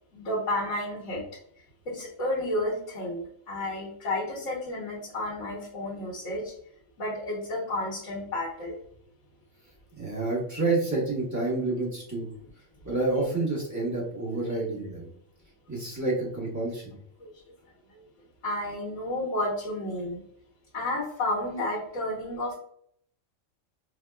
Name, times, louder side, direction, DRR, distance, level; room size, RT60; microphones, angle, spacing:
voice 1, 0.1-1.2 1.9-6.5 7.0-8.7 17.2-17.3 18.4-20.2 20.7-22.5, left 1 dB, 65° left, -8 dB, 1.4 m, -31 dB
voice 2, 9.9-12.3 12.8-15.1 15.7-17.0, right 2 dB, 15° right, -6 dB, 0.9 m, -29 dB
4.4 x 2.2 x 2.3 m, 0.64 s
omnidirectional pair, 1.4 m